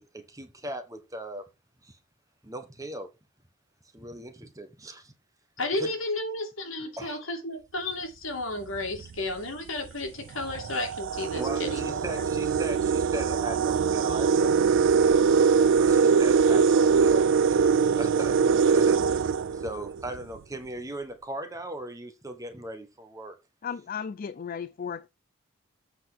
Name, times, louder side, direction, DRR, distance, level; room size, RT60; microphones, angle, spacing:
voice 1, 0.0-1.4 1.8-2.0 2.4-3.1 3.9-5.1 5.7-5.9 7.0-7.2 11.3-15.2 15.8-17.6 18.0-23.3, right 1 dB, 15° right, 1.3 m, -38 dB
voice 2, 5.6-12.2, left 2 dB, 65° left, 2.6 m, -33 dB
sound 1, 8.8-9.0 9.9-10.0 10.4-20.2, right 6 dB, 60° right, 0.3 m, -22 dB
voice 3, 23.6-25.1, left 7 dB, 45° left, 0.4 m, -35 dB
8.0 x 4.6 x 6.0 m
head